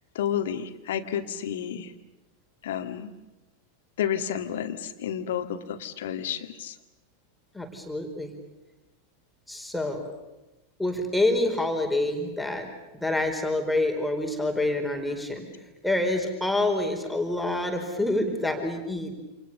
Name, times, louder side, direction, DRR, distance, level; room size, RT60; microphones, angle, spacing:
voice 1, 0.1-1.9 2.6-3.1 4.0-6.8, left 9 dB, 55° left, 8 dB, 2.1 m, -31 dB
voice 2, 7.5-8.3 9.5-10.1 10.8-12.7 12.9-15.5 15.8-19.1, left 2 dB, 5° left, 3 dB, 4.6 m, -27 dB
29.0 x 28.0 x 6.9 m, 1.0 s
figure-of-eight pair, 90°, 0 cm